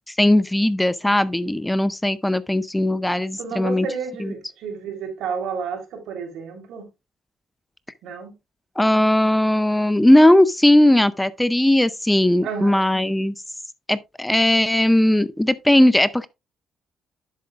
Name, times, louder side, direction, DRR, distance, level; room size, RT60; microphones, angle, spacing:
voice 1, 0.2-3.9 4.2-4.3 8.8-13.3 13.9-16.3, left 1 dB, 5° left, 0.5 m, -18 dB
voice 2, 3.4-6.9 8.0-8.3 12.4-12.9, right 6 dB, 80° right, 3.4 m, -31 dB
10.5 x 7.9 x 2.4 m
cardioid pair, 110°, 0 cm